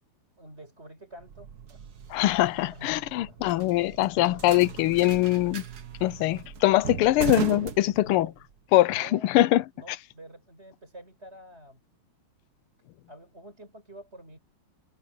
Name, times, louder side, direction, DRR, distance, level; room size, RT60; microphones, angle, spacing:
voice 1, 0.4-1.8 2.7-2.9 3.2-3.4 4.2-4.4 7.9-8.3 8.9-9.3 9.8-11.8 13.1-14.4, right 1 dB, 30° right, 5.7 m, -47 dB
sound 1, 1.2-8.5, right 6 dB, 50° right, 1.7 m, -37 dB
voice 2, 2.1-5.6 6.0-8.3 8.7-9.6, left 16 dB, 90° left, 1.5 m, -23 dB
omnidirectional pair, 2.4 m